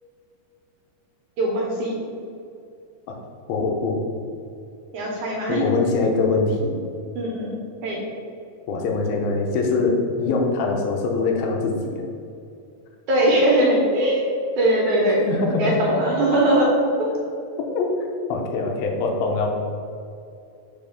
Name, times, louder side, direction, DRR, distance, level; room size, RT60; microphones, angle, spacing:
voice 1, 1.4-2.0 4.9-5.7 7.2-8.0 13.1-14.2 14.6-15.3 15.5-16.7 17.0-17.1, right 1 dB, 70° right, -3 dB, 2.1 m, -21 dB
voice 2, 3.5-4.0 5.5-6.8 8.7-12.1 15.3-15.8 16.3-16.4 17.6-17.9 18.3-19.5, left 3 dB, 80° left, 1 dB, 2.5 m, -23 dB
5.5 x 5.2 x 5.2 m, 2.5 s
omnidirectional pair, 4.3 m